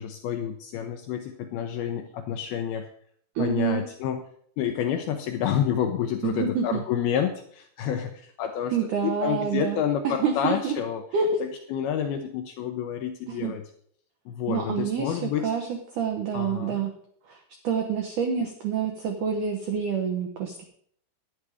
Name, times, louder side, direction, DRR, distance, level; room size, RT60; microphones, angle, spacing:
voice 1, 0.0-2.9 3.4-4.2 4.6-8.7 9.0-11.1 11.4-13.6 14.3-15.5 16.3-16.8, left 9 dB, 80° left, 5 dB, 2.2 m, -29 dB
voice 2, 3.4-3.8 6.2-6.8 8.7-9.8 10.0-10.7 11.1-11.4 13.3-13.6 14.5-15.7 15.9-16.9 17.3-17.4 17.6-20.6, right 6 dB, 80° right, 4 dB, 1.8 m, -27 dB
11.0 x 9.3 x 4.9 m, 0.64 s
omnidirectional pair, 5.2 m